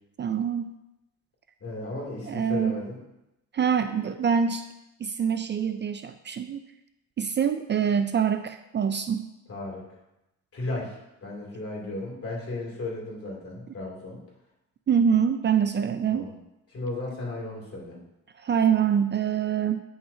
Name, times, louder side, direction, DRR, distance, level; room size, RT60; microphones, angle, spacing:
voice 1, 0.2-0.7 2.3-2.7 3.5-4.6 5.0-6.6 7.2-9.2 14.9-16.3 18.4-19.8, right 7 dB, 40° right, 10 dB, 0.4 m, -25 dB
voice 2, 1.6-3.0 9.5-9.9 10.5-14.2 16.1-16.3 16.7-18.0, left 2 dB, 50° left, -3 dB, 2.9 m, -35 dB
9.7 x 5.7 x 2.8 m, 0.90 s
cardioid pair, 90°, 30 cm